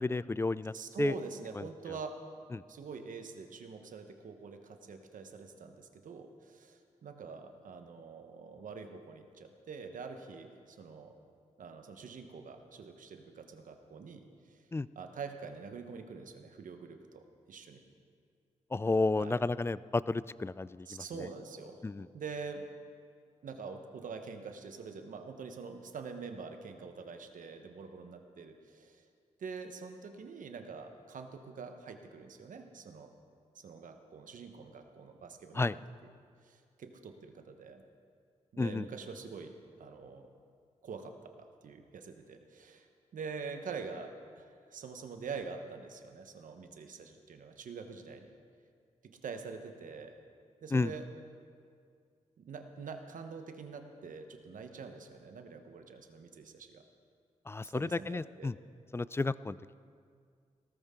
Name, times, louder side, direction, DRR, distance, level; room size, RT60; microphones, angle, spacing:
voice 1, 0.0-1.1 1.6-1.7 2.5-2.6 14.7-14.9 18.7-21.3 21.8-22.1 35.5-35.8 38.6-38.9 50.7-50.9 57.5-58.6 58.9-59.8, left 3 dB, 20° left, 18 dB, 0.3 m, -32 dB
voice 2, 0.7-2.2 2.7-11.1 11.6-14.7 14.9-17.8 19.2-19.4 20.9-21.9 22.1-22.7 23.4-29.1 29.4-33.1 33.5-35.8 36.4-37.8 38.5-40.3 40.8-48.3 49.0-50.1 50.6-51.1 52.4-56.8 57.6-58.5, right 5 dB, 75° right, 6 dB, 1.2 m, -45 dB
17.5 x 14.0 x 3.8 m, 2.2 s
cardioid pair, 55°, 14 cm